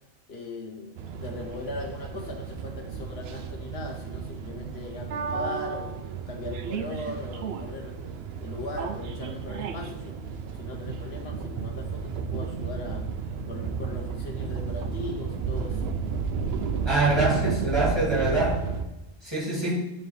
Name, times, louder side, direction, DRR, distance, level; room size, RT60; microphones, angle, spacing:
voice 1, 0.3-6.0 6.3-7.9 8.4-10.2 10.5-13.0 13.5-15.8 18.3-18.5, left 2 dB, 80° left, 2 dB, 1.3 m, -39 dB
sound 1, 1.0-18.9, right 5 dB, 80° right, 0.8 m, -32 dB
voice 2, 16.8-18.6 19.2-19.9, right 2 dB, 25° right, -6 dB, 2.2 m, -25 dB
9.2 x 3.8 x 3.2 m, 1.0 s
omnidirectional pair, 1.0 m